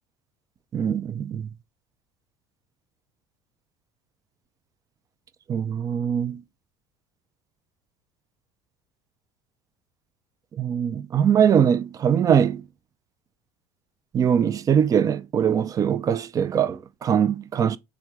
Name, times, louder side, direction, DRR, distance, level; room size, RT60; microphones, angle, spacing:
voice 1, 0.7-1.5 5.5-6.4 10.6-12.6 14.1-17.8, right 8 dB, 35° right, 0.4 m, -22 dB
3.2 x 2.5 x 4.4 m
supercardioid pair, 85°, 10 cm